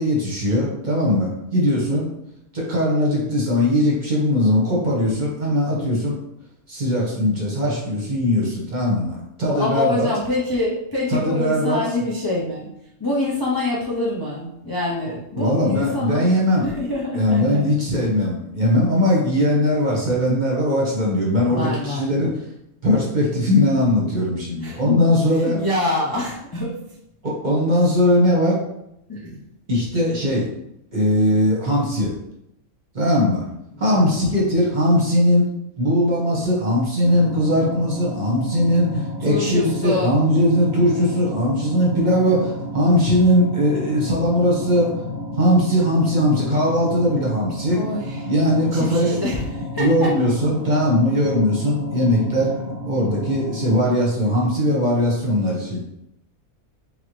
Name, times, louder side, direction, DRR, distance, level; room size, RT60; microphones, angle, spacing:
voice 1, 0.0-2.1 2.5-6.1 6.7-10.1 11.1-11.8 15.3-16.7 17.1-22.3 22.8-25.6 27.2-28.6 29.7-30.5 30.9-32.1 32.9-33.4 33.8-35.5 35.8-44.9 45.3-47.8 48.3-49.2 49.8-52.5 52.9-55.9, left 1 dB, 35° right, -4 dB, 1.1 m, -20 dB
voice 2, 9.4-12.7 13.0-16.3 16.6-17.7 21.5-22.1 24.6-24.8 25.3-26.8 29.1-29.4 33.9-34.2 39.2-40.1 47.7-48.3 48.7-49.5 49.7-50.1, left 2 dB, 25° left, -6 dB, 0.4 m, -25 dB
sound 1, 37.0-53.8, left 1 dB, 65° left, 1.4 m, -31 dB
3.8 x 3.8 x 3.2 m, 0.81 s
omnidirectional pair, 1.5 m